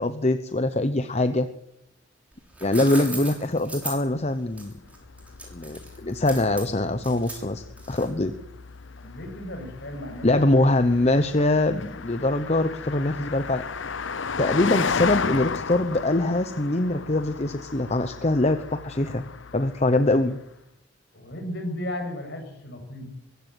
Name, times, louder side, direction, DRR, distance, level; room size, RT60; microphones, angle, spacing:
voice 1, 0.0-1.5 2.6-4.8 5.5-8.3 10.2-13.6 14.4-20.4, left 2 dB, 35° left, 10 dB, 1.0 m, -23 dB
sound 1, 2.3-8.3, right 2 dB, 5° right, 6.9 m, -38 dB
Car passing by, 4.7-20.4, left 5 dB, 75° left, 0.9 m, -35 dB
voice 2, 9.0-10.7 21.1-23.1, left 1 dB, 60° left, 5 dB, 7.0 m, -35 dB
23.5 x 15.5 x 9.3 m, 0.79 s
head